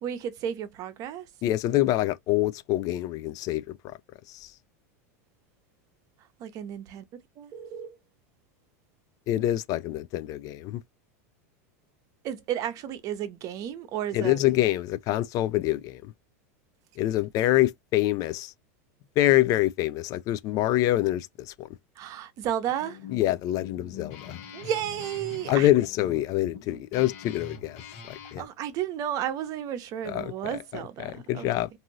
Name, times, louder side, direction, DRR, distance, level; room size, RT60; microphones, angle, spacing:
voice 1, 0.0-1.3 6.2-7.0 7.4-8.0 12.2-14.4 22.0-23.0 24.5-25.7 28.4-31.5, right 10 dB, 45° right, 0.7 m, -33 dB
voice 2, 1.4-4.0 4.3-4.5 9.3-10.8 14.1-16.1 17.0-18.5 19.2-21.7 23.1-24.4 25.5-27.8 28.1-28.4 30.1-30.3 31.0-31.7, left 15 dB, 45° left, 0.3 m, -26 dB
Guitar, 22.7-28.4, left 6 dB, 65° left, 1.2 m, -43 dB
2.6 x 2.5 x 2.9 m
supercardioid pair, 115°, 8 cm